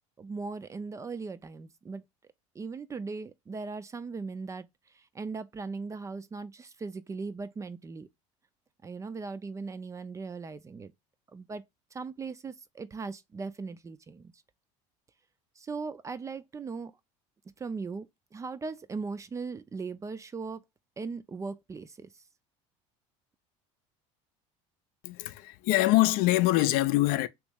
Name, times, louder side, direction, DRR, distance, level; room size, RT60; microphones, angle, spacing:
voice 1, 0.2-2.0 2.5-4.7 4.9-8.1 8.8-10.9 11.3-11.6 11.9-14.3 15.6-16.9 17.6-20.6 21.0-22.1, right 4 dB, 20° right, 0.4 m, -38 dB
voice 2, 25.0-27.3, left 17 dB, 65° left, 0.5 m, -24 dB
3.1 x 3.1 x 3.4 m
supercardioid pair, 105°, 16 cm